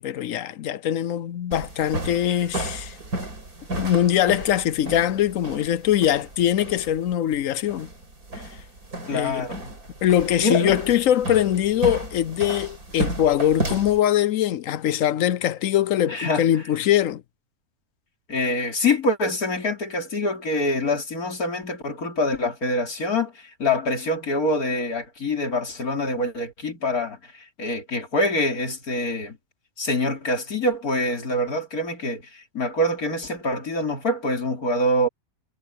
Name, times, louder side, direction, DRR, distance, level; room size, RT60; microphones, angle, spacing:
voice 1, 0.0-3.0 3.7-7.9 9.1-9.5 10.0-17.2, left 11 dB, 70° left, 1.0 m, -22 dB
sound 1, 1.5-14.0, right 1 dB, 85° right, 5.8 m, -33 dB
voice 2, 9.1-9.8 10.4-10.7 16.1-16.4 18.3-29.4 29.8-35.1, left 1 dB, 85° left, 3.7 m, -25 dB
omnidirectional pair, 1.5 m